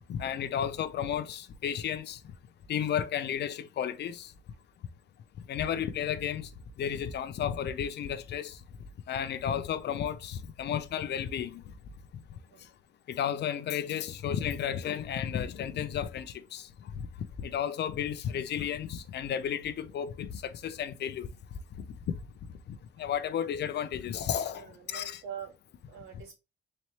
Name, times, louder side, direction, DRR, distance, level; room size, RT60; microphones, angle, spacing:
voice 1, 0.1-2.2 2.7-4.3 5.5-6.5 6.8-8.6 9.1-11.6 13.1-16.7 17.0-17.1 17.4-21.3 22.7-25.2, left 9 dB, 60° left, 0.5 m, -33 dB
voice 2, 24.5-25.5 25.9-26.3, right 7 dB, 85° right, 2.1 m, -44 dB
4.1 x 3.1 x 3.0 m
cardioid pair, 90°, 20 cm